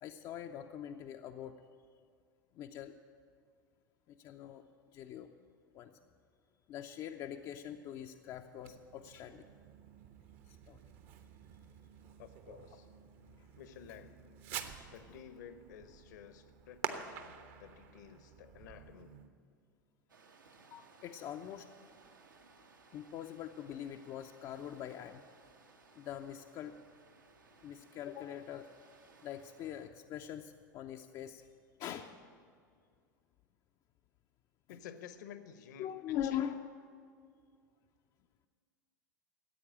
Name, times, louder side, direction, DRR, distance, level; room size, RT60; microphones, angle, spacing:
voice 1, 0.0-1.6 2.5-3.0 4.1-4.6 4.9-5.3 5.7-6.0 6.7-9.5 10.5-10.8 13.4-13.5 20.7-21.7 22.9-25.2 26.0-26.8 27.6-28.7 29.2-31.5 31.8-32.1 34.7-34.8 35.8-36.6, left 10 dB, 35° left, 5 dB, 0.6 m, -43 dB
Fireworks, 8.6-19.3, right 9 dB, 50° right, 1.0 m, -48 dB
voice 2, 12.2-12.9 13.6-14.2 14.8-19.2 34.7-36.4, left 8 dB, 60° left, 11 dB, 1.0 m, -53 dB
sound 1, 20.1-29.9, right 4 dB, 75° right, 1.3 m, -62 dB
15.0 x 8.5 x 8.7 m, 2.2 s
figure-of-eight pair, 85°, 11 cm